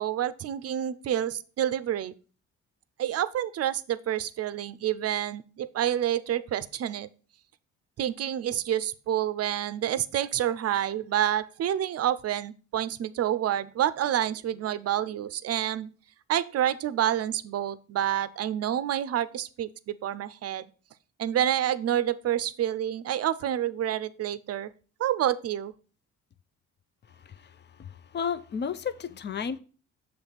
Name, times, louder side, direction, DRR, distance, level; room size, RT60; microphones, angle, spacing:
voice 1, 0.0-2.1 3.0-7.1 8.0-15.9 16.3-20.7 21.2-24.7 25.0-25.7, right 11 dB, 55° right, 16 dB, 0.5 m, -28 dB
voice 2, 27.1-29.6, left 7 dB, 35° left, 13 dB, 0.5 m, -34 dB
7.0 x 3.3 x 5.7 m, 0.38 s
cardioid pair, 90°, 30 cm